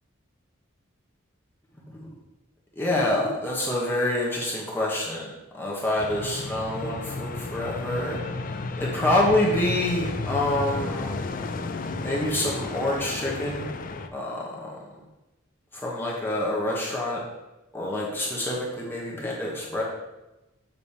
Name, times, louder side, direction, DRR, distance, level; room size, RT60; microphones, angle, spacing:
voice 1, 2.8-8.2 8.8-11.2 12.0-13.7 14.1-14.8 15.7-17.2 17.7-19.8, left 1 dB, 10° left, -4 dB, 1.1 m, -27 dB
sound 1, 6.0-14.1, left 3 dB, 40° left, 0.4 m, -33 dB
7.0 x 5.3 x 4.3 m, 1.0 s
head